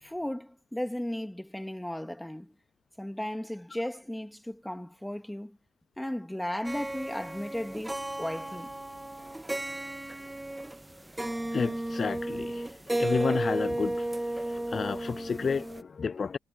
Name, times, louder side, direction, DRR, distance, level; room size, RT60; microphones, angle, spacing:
voice 1, 0.0-2.6 3.0-5.6 6.0-8.7, left 1 dB, 5° left, 3.3 m, -35 dB
sound 1, 6.7-10.9 11.2-15.8, right 1 dB, 10° right, 1.8 m, -34 dB
voice 2, 11.5-12.7 13.0-14.1 14.5-16.4, left 5 dB, 40° left, 0.4 m, -31 dB
hypercardioid pair, 45°, 0 cm